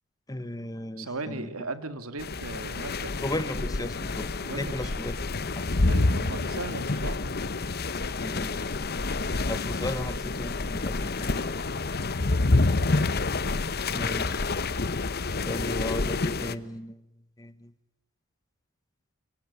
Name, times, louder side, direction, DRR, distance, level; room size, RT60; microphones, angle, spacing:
voice 1, 0.3-1.5 3.2-4.3 4.5-5.2 5.5-5.6 8.2-8.7 9.5-11.6 13.9-14.5 15.4-17.0 17.4-17.7, left 1 dB, 15° left, 14 dB, 1.2 m, -35 dB
voice 2, 1.0-3.4 4.4-4.9 5.9-7.3, right 3 dB, 75° right, 11 dB, 2.3 m, -37 dB
sound 1, 2.2-16.5, left 3 dB, 45° left, 1.0 m, -28 dB
26.5 x 23.0 x 8.3 m, 0.89 s
head